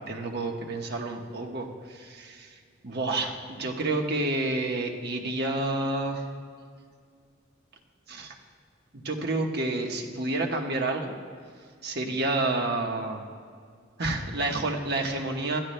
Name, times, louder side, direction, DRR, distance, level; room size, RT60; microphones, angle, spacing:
voice 1, 0.1-2.6 2.8-6.3 8.1-8.4 8.9-11.2 11.8-13.2 14.0-15.6, right 2 dB, 55° right, 2 dB, 1.2 m, -29 dB
22.0 x 13.0 x 2.2 m, 2.1 s
head